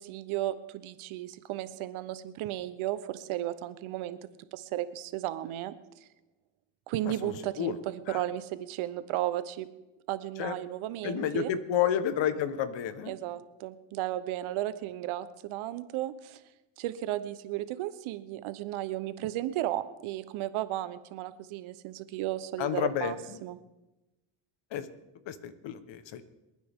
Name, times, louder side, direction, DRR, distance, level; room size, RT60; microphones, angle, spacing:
voice 1, 0.0-4.2 4.5-5.7 6.9-9.7 10.1-11.5 13.1-16.4 16.8-23.2 23.4-23.6, right 14 dB, 75° right, 13 dB, 1.0 m, -34 dB
voice 2, 7.0-7.8 8.1-8.2 10.4-10.5 11.0-13.2 22.6-23.4 24.7-24.9 25.2-26.2, left 9 dB, 65° left, 12 dB, 1.3 m, -31 dB
27.5 x 9.5 x 3.7 m, 1.0 s
supercardioid pair, 85°, 48 cm